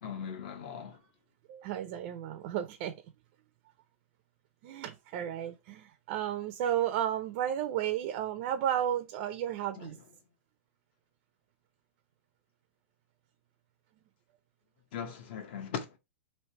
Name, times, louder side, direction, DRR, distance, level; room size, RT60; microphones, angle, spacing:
voice 1, 0.0-1.0 9.8-9.9 14.9-16.0, left 7 dB, 45° left, 0.9 m, -39 dB
voice 2, 1.5-2.9 4.6-10.0, right 10 dB, 40° right, 0.4 m, -33 dB
3.2 x 2.8 x 4.2 m
supercardioid pair, 160°, 8 cm